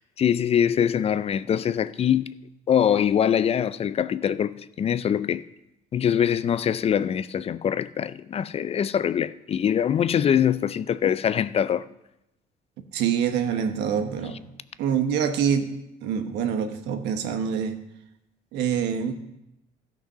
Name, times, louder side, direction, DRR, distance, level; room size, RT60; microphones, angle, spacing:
voice 1, 0.2-2.4 2.7-5.5 5.9-11.9, left 9 dB, 35° left, 0.4 m, -23 dB
voice 2, 12.9-14.4 14.8-15.7 16.0-17.8 18.5-19.1, right 8 dB, 85° right, 1.1 m, -25 dB
13.5 x 6.1 x 5.5 m
cardioid pair, 110°, 17 cm